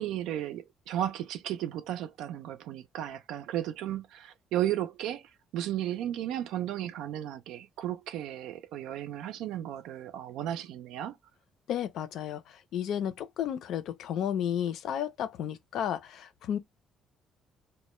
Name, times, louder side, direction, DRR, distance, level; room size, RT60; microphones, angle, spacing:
voice 1, 0.0-11.2, right 12 dB, 80° right, 0.4 m, -34 dB
voice 2, 11.7-16.6, left 9 dB, 65° left, 0.5 m, -33 dB
2.1 x 2.1 x 3.0 m
cardioid pair, 135°, 0 cm